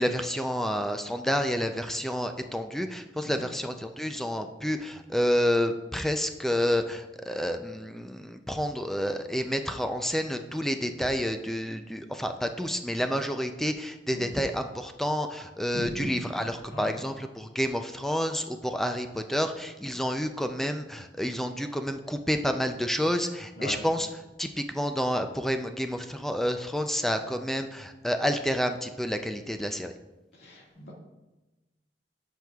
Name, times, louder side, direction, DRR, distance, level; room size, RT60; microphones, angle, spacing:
voice 1, 0.0-24.1 24.4-29.9, equal, ahead, 6 dB, 0.3 m, -29 dB
voice 2, 15.7-16.1 16.7-16.9 23.6-23.8 30.4-30.9, equal, 75° left, -2 dB, 1.8 m, -37 dB
10.5 x 6.1 x 2.3 m, 1.1 s
head